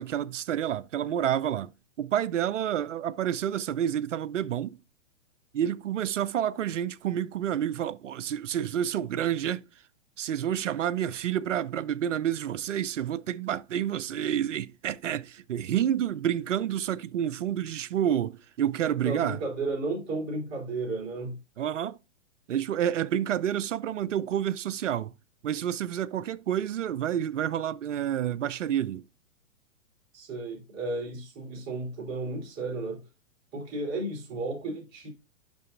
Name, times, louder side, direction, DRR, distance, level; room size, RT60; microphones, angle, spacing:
voice 1, 0.0-1.7 2.0-4.8 5.5-9.7 10.2-19.4 21.6-22.0 22.5-25.1 25.4-29.0, right 10 dB, 80° right, 0.5 m, -29 dB
voice 2, 19.0-21.4 30.1-33.0 33.5-35.1, right 2 dB, 35° right, 3.8 m, -33 dB
11.5 x 3.8 x 2.7 m
hypercardioid pair, 115°, 36 cm